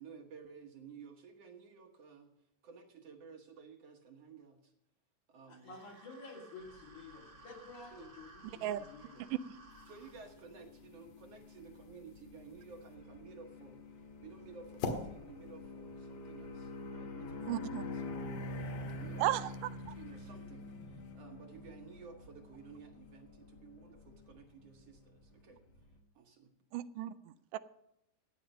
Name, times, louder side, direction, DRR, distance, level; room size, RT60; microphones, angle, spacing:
voice 1, 0.0-2.3 2.6-4.6 5.3-5.7 7.9-8.2 9.9-13.8 14.2-19.6 20.0-25.6 26.2-26.5, right 5 dB, 60° right, 4 dB, 2.1 m, -54 dB
voice 2, 5.5-9.2, left 3 dB, 70° left, 0 dB, 3.8 m, -51 dB
sound 1, 5.6-10.2, right 3 dB, 30° right, 1.1 m, -58 dB
sound 2, 6.7-26.0, left 2 dB, 50° left, 1.6 m, -47 dB
sound 3, 9.7-16.9, left 4 dB, 85° left, 3.2 m, -47 dB
voice 3, 17.5-17.8 19.2-19.9 26.7-27.6, right 14 dB, 85° right, 14 dB, 2.2 m, -35 dB
15.0 x 9.4 x 5.3 m, 0.84 s
omnidirectional pair, 3.7 m